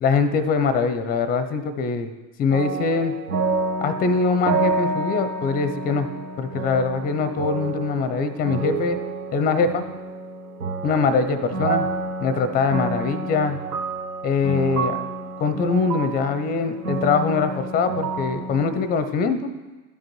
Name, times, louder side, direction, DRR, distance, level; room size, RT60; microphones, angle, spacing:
voice 1, 0.0-2.1 2.4-3.1 3.8-6.1 6.4-9.0 9.3-9.9 10.8-11.9 12.2-13.6 14.2-15.0 15.4-19.5, left 4 dB, 20° left, 11 dB, 0.5 m, -22 dB
sound 1, 2.5-18.9, right 3 dB, 80° right, 0.9 m, -29 dB
12.5 x 5.1 x 3.1 m, 1.2 s
hypercardioid pair, 85°, 43 cm